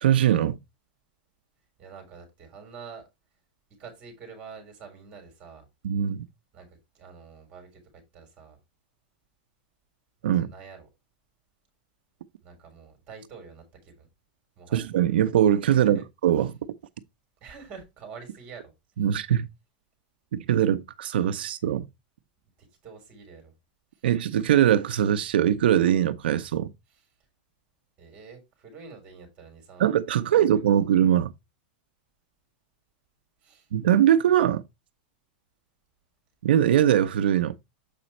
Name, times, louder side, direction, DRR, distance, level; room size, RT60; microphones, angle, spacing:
voice 1, 0.0-0.6 5.8-6.2 10.2-10.5 14.7-16.5 19.0-19.5 20.3-21.9 24.0-26.7 29.8-31.3 33.7-34.6 36.4-37.5, right 10 dB, 85° right, 0.7 m, -22 dB
voice 2, 1.8-3.1 3.8-5.7 6.5-8.6 10.2-10.9 12.4-14.1 14.6-14.9 15.7-16.0 17.4-18.7 22.6-23.5 23.9-24.1 26.9-27.0 28.0-30.8 33.4-33.7, right 5 dB, 25° right, 3.7 m, -47 dB
7.4 x 5.1 x 4.3 m
supercardioid pair, 170°, 5 cm